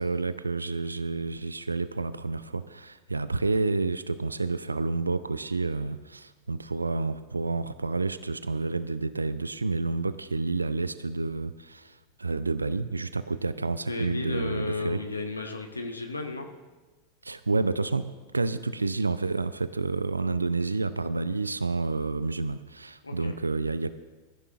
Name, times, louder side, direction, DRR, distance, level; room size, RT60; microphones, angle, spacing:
voice 1, 0.0-15.0 17.2-18.1 18.3-23.9, right 3 dB, 80° right, 13 dB, 0.5 m, -29 dB
voice 2, 13.9-16.5 23.0-23.3, left 3 dB, 80° left, 4 dB, 1.1 m, -33 dB
21.5 x 14.5 x 2.5 m, 1.2 s
figure-of-eight pair, 90°, 0 cm